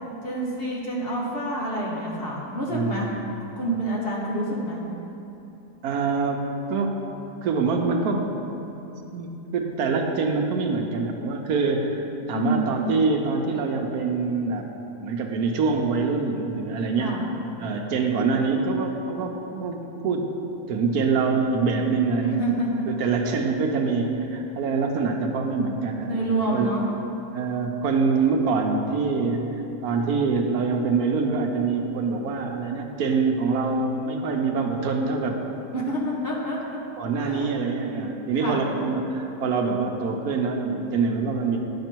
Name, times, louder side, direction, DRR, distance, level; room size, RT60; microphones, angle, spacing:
voice 1, 0.2-3.1 3.6-4.8 12.3-12.6 17.0-17.3 22.2-22.9 26.0-26.9 35.7-36.8 37.2-37.5 38.4-38.7, right 1 dB, 40° left, -4 dB, 1.2 m, -28 dB
voice 2, 2.7-3.1 5.8-7.0 7.4-8.3 9.1-14.7 15.0-17.1 17.6-20.3 20.7-22.4 23.0-26.2 26.5-26.7 27.3-29.5 29.8-35.4 37.0-41.6, right 4 dB, 75° right, 3 dB, 1.2 m, -25 dB
10.5 x 5.8 x 4.5 m, 3.0 s
omnidirectional pair, 1.7 m